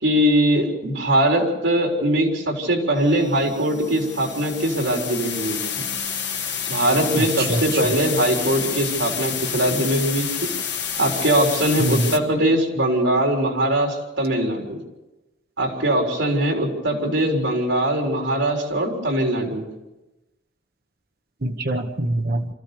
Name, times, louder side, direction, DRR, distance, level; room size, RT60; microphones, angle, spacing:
voice 1, 0.0-5.6 6.7-10.3 11.0-14.8 15.6-19.7, right 1 dB, 75° right, 1 dB, 4.0 m, -21 dB
sound 1, 3.0-12.2, left 7 dB, 65° left, 1.6 m, -29 dB
voice 2, 7.2-7.8 11.8-12.1 21.4-22.5, right 1 dB, 55° right, 6 dB, 1.2 m, -24 dB
26.0 x 14.5 x 6.9 m, 1.0 s
head